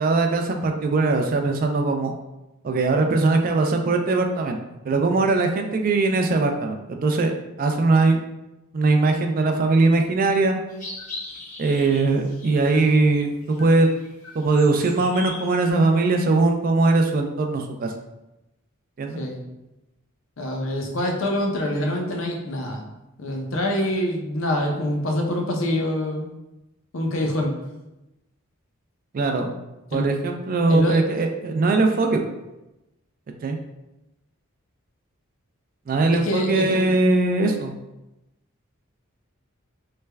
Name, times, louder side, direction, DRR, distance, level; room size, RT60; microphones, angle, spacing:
voice 1, 0.0-2.1 2.6-4.6 4.9-7.3 7.6-8.2 8.7-10.6 11.6-13.9 14.3-17.9 19.0-19.2 29.1-29.5 29.9-32.3 33.4-33.6 35.9-37.7, right 3 dB, 40° right, 4 dB, 0.3 m, -20 dB
sound 1, 10.7-13.1 13.4-15.7, left 2 dB, 40° left, 1.1 m, -39 dB
voice 2, 20.4-22.8 23.2-26.3 26.9-27.5 29.9-30.0 30.7-31.0 36.2-36.9, left 1 dB, 65° left, 1 dB, 0.6 m, -25 dB
3.2 x 2.2 x 3.2 m, 0.96 s
head